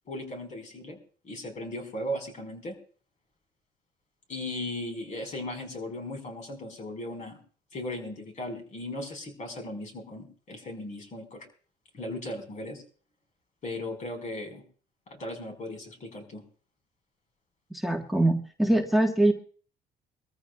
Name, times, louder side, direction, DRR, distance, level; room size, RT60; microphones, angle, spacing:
voice 1, 0.1-1.0 1.2-2.7 4.3-7.4 7.7-11.5 11.9-12.8 13.6-14.6 15.1-16.4, left 1 dB, 45° left, 5 dB, 4.7 m, -37 dB
voice 2, 17.7-19.3, right 1 dB, ahead, 3 dB, 1.3 m, -23 dB
24.0 x 14.0 x 2.3 m, 0.42 s
cardioid pair, 110°, 17 cm